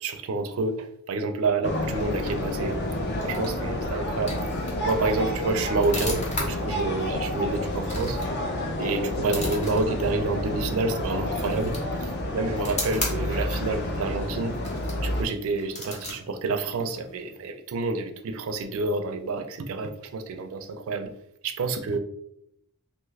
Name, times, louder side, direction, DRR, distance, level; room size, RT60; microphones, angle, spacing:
voice 1, 0.0-2.8 3.2-4.4 4.8-8.2 8.8-11.7 12.0-14.6 15.0-21.1 21.4-22.0, right 3 dB, 65° right, 7 dB, 0.4 m, -28 dB
sound 1, 1.6-15.2, left 1 dB, 50° left, 0.5 m, -29 dB
sound 2, 1.7-17.3, left 1 dB, 30° left, 0.8 m, -39 dB
2.9 x 2.3 x 3.2 m, 0.74 s
head